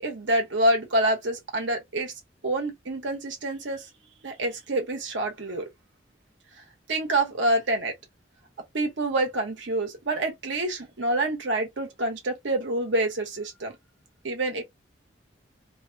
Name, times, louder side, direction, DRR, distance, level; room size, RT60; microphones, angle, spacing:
voice 1, 0.0-2.1 2.4-3.9 4.2-5.7 6.9-7.9 8.7-13.8 14.2-14.6, right 1 dB, 80° right, 1.0 m, -27 dB
3.0 x 2.1 x 2.7 m
head